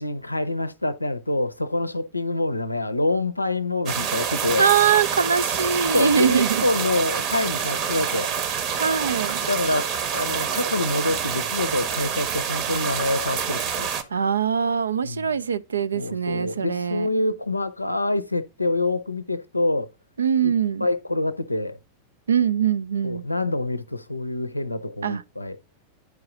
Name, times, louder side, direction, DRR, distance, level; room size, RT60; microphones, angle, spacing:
voice 1, 0.0-4.7 5.9-8.3 9.5-13.9 15.0-15.3 15.9-19.9 20.4-20.5 20.8-21.8 23.0-25.6, left 2 dB, 85° left, 0.5 m, -26 dB
sound 1, 3.9-14.0, right 7 dB, 40° right, 0.9 m, -27 dB
voice 2, 4.6-6.6 8.8-9.4 14.1-17.1 20.2-20.9 22.3-23.2 25.0-25.2, right 7 dB, 70° right, 0.4 m, -22 dB
9.6 x 4.7 x 3.7 m
figure-of-eight pair, 90°, 0 cm